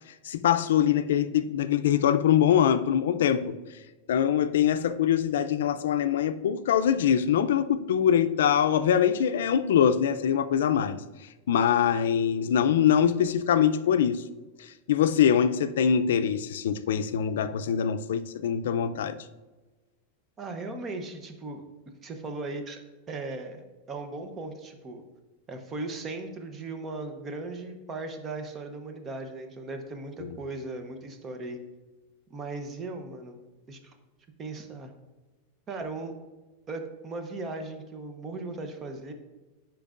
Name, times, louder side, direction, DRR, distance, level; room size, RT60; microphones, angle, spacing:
voice 1, 0.2-3.5 4.1-11.0 11.5-14.2 14.9-19.2 30.2-30.4, left 9 dB, 85° left, 0.4 m, -23 dB
voice 2, 20.4-21.7 22.0-22.8 23.1-23.6 23.9-25.0 25.5-31.6 32.3-33.4 33.7-34.0 34.4-34.9 35.7-36.1 36.7-39.1, right 3 dB, 20° right, 0.7 m, -37 dB
10.5 x 4.5 x 2.5 m
supercardioid pair, 155°, 0 cm